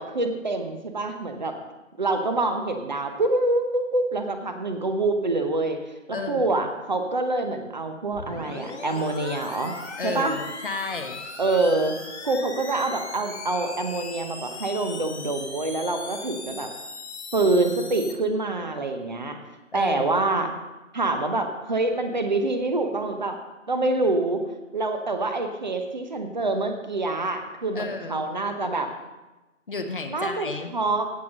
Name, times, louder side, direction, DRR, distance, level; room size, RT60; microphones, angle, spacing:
voice 1, 0.0-1.6 2.0-5.8 6.1-9.7 10.0-10.4 11.4-11.9 12.2-16.7 17.3-19.4 19.7-20.5 20.9-23.4 23.7-24.4 24.7-28.9 30.1-31.1, right 2 dB, 35° right, 6 dB, 1.0 m, -26 dB
voice 2, 6.1-6.6 10.0-11.2 19.7-20.1 27.7-28.3 29.7-30.7, left 4 dB, 40° left, 6 dB, 0.9 m, -32 dB
sound 1, 8.1-18.1, left 3 dB, 55° left, 1.7 m, -38 dB
16.0 x 6.0 x 5.4 m, 1.1 s
figure-of-eight pair, 150°, 39 cm